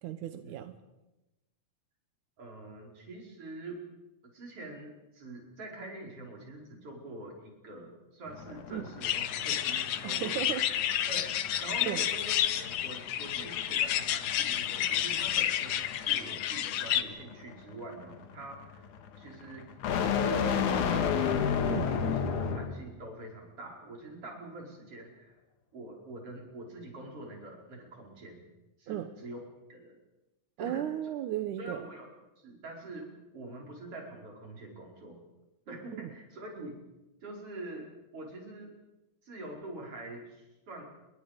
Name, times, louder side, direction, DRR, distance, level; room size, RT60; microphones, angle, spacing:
voice 1, 0.0-0.7 8.7-8.8 10.0-10.6 11.8-12.0 21.7-21.9 28.9-29.1 30.6-31.8 35.9-36.1, right 12 dB, 90° right, 9 dB, 2.5 m, -35 dB
voice 2, 2.4-3.8 4.2-10.5 11.1-18.9 19.2-19.7 20.2-25.3 25.7-28.4 28.8-29.4 29.7-30.0 30.6-30.9 31.6-32.1 32.4-33.1 33.3-35.2 35.7-36.8 37.2-38.7 39.2-40.8, right 2 dB, 50° right, -1 dB, 6.1 m, -45 dB
sound 1, 8.3-22.8, left 7 dB, 90° left, 3.0 m, -33 dB
sound 2, 9.0-17.0, left 11 dB, 65° left, 1.9 m, -30 dB
28.5 x 23.0 x 5.2 m, 1.0 s
omnidirectional pair, 3.4 m